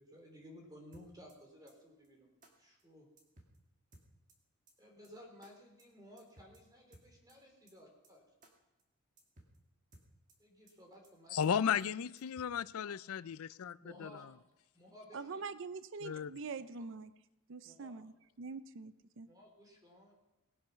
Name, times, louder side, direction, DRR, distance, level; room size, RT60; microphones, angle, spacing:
voice 1, 0.0-2.3 2.6-3.1 4.8-8.2 10.4-11.9 13.8-14.3 14.7-15.4 17.6-18.0 19.3-20.1, equal, 15° right, 3.4 m, -56 dB
sound 1, 0.9-1.4 1.7-1.8 2.0-2.1 2.4-2.5 2.8-2.9 3.2-3.6 3.9-4.4 4.7-4.8 5.0-5.1 5.4-5.5 5.8-5.9 6.2-6.6 6.9-7.4 7.7-7.8 8.0-8.1 8.4-8.5 8.8-8.9 9.2-9.6 9.9-10.4 10.7-10.8 11.0-11.1 11.4-11.5 11.8-11.9 12.2-12.6, right 1 dB, 35° right, 2.1 m, -61 dB
voice 2, 11.3-14.1 16.0-16.3, left 8 dB, 70° left, 0.4 m, -35 dB
voice 3, 15.1-17.1 17.5-19.3, right 4 dB, 55° right, 0.5 m, -44 dB
18.5 x 8.6 x 5.7 m
head